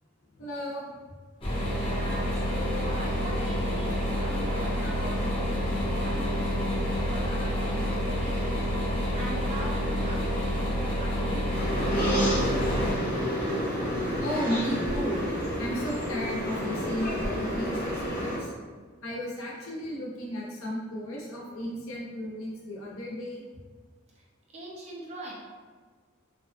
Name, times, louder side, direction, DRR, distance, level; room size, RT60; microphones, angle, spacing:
voice 1, 0.2-1.0 1.5-1.6 14.2-15.2 15.6-18.5 19.0-23.4, equal, 90° left, -4 dB, 0.6 m, -34 dB
sound 1, 1.4-12.9, equal, 25° left, 0.6 m, -28 dB
voice 2, 1.7-8.6 8.9-13.1 24.2-24.3 24.5-25.3, right 1 dB, 35° right, -3 dB, 0.5 m, -42 dB
sound 2, 11.5-18.4, equal, 45° left, 1.0 m, -29 dB
2.7 x 2.1 x 2.4 m, 1.5 s
head